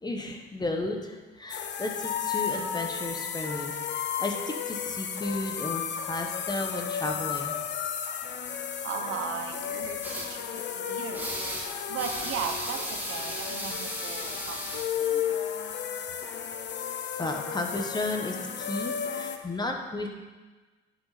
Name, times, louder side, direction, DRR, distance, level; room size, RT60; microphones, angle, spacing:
voice 1, 0.0-7.5 17.2-20.1, left 2 dB, 20° left, 3 dB, 1.3 m, -33 dB
sound 1, 1.5-19.4, left 8 dB, 60° left, 0.8 m, -33 dB
voice 2, 8.8-10.2 10.7-16.2 16.5-16.6 18.7-19.4, right 6 dB, 90° right, 5 dB, 1.0 m, -38 dB
sound 2, 10.0-10.3 11.1-11.7 12.0-14.8, right 1 dB, 10° right, 1.8 m, -36 dB
10.5 x 6.6 x 4.2 m, 1.3 s
cardioid pair, 90°, 20 cm